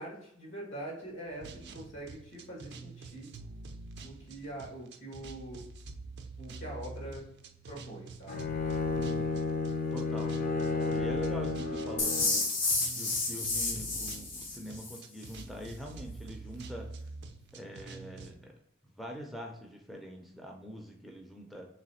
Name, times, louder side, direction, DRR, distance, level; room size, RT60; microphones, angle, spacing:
voice 1, 0.0-3.3 4.0-5.7 6.4-7.3 7.7-8.5, right 1 dB, 80° left, -3 dB, 1.7 m, -43 dB
sound 1, 1.4-18.4, right 3 dB, 55° right, 0.4 m, -47 dB
Bowed string instrument, 8.3-12.5, left 3 dB, 45° left, 0.6 m, -32 dB
voice 2, 8.9-9.4 9.9-12.5 12.9-16.9 17.5-18.5 19.0-21.7, equal, ahead, 0 dB, 0.4 m, -44 dB
sound 2, 12.0-15.0, left 3 dB, 65° left, 1.2 m, -31 dB
3.4 x 3.1 x 4.1 m, 0.74 s
head